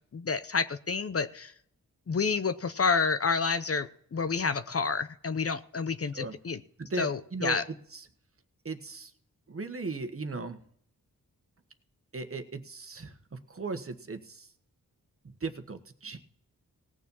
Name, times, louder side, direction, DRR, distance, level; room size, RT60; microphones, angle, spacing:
voice 1, 0.1-1.5 2.1-6.6 7.0-7.6, left 5 dB, 40° left, 12 dB, 0.8 m, -29 dB
voice 2, 6.8-8.1 8.6-9.1 9.5-10.6 12.1-14.5 15.2-16.2, right 3 dB, 40° right, 8 dB, 1.5 m, -37 dB
17.5 x 7.0 x 5.6 m, 0.65 s
cardioid pair, 50°, 35 cm